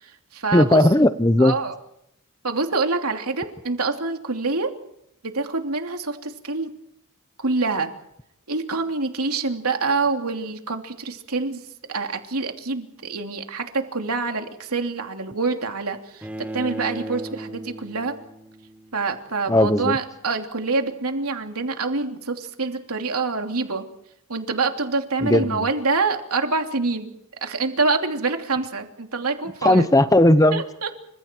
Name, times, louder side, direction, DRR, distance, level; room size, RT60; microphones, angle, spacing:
voice 1, 0.0-0.9 1.4-1.7 2.4-4.7 5.2-6.7 7.4-7.9 8.5-11.6 11.9-18.1 18.9-23.9 24.3-27.1 27.4-29.9 30.5-30.9, right 3 dB, 85° right, 4 dB, 3.0 m, -26 dB
voice 2, 0.5-1.5 19.5-20.0 25.2-25.4 29.6-30.6, left 1 dB, 15° left, 12 dB, 0.9 m, -16 dB
Bowed string instrument, 16.2-19.3, right 1 dB, 5° right, 1.5 m, -36 dB
30.0 x 26.0 x 4.6 m, 0.77 s
head